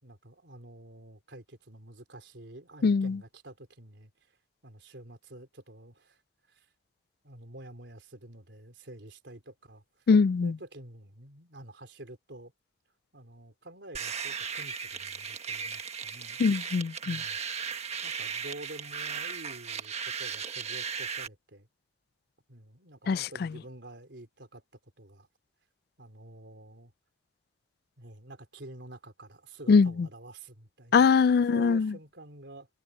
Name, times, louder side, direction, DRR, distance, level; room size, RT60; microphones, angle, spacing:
voice 1, 0.0-4.3 4.6-6.2 6.5-6.7 7.2-10.0 10.4-12.5 13.1-16.4 17.0-17.4 18.0-21.7 22.5-24.6 25.0-25.3 26.0-26.9 28.0-31.1 31.5-32.7, right 1 dB, 75° right, 3.8 m, -48 dB
voice 2, 2.8-3.2 10.1-10.6 16.4-17.2 23.1-23.5 29.7-30.1 30.9-31.9, left 5 dB, 55° left, 0.3 m, -22 dB
sound 1, 13.9-21.3, right 6 dB, 35° right, 1.5 m, -36 dB
head